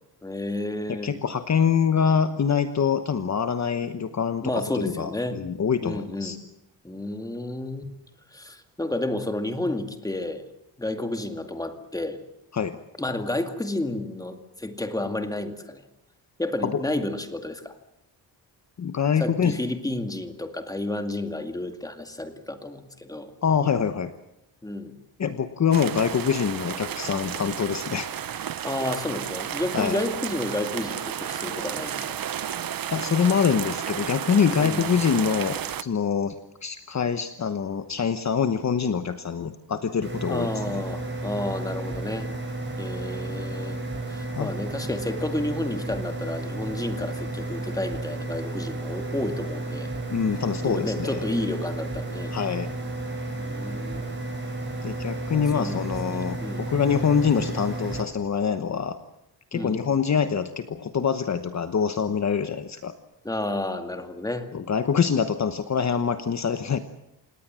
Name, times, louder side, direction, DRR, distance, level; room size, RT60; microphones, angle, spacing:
voice 1, 0.2-1.1 4.4-5.4 5.8-6.4 6.8-7.9 8.3-10.4 10.8-12.2 13.0-15.8 16.4-17.7 19.2-23.3 24.6-24.9 28.6-32.2 34.6-34.8 40.3-42.3 42.8-43.8 44.1-49.9 50.6-52.3 53.4-54.1 55.3-56.7 59.5-59.8 63.2-64.5, left 1 dB, 10° left, 6 dB, 2.2 m, -31 dB
voice 2, 1.0-6.4 12.5-12.8 16.6-16.8 18.8-19.6 23.4-24.1 25.2-28.1 29.7-30.0 32.9-36.4 36.6-40.5 44.4-44.5 50.1-51.2 52.3-52.7 54.8-59.0 59.5-62.9 64.5-66.8, left 7 dB, 40° left, 9 dB, 1.1 m, -25 dB
sound 1, 25.7-35.8, right 9 dB, 55° right, 0.9 m, -32 dB
sound 2, 40.0-58.0, right 2 dB, 25° right, 7.3 m, -32 dB
28.0 x 19.0 x 7.6 m, 0.84 s
wide cardioid pair, 165°, 43 cm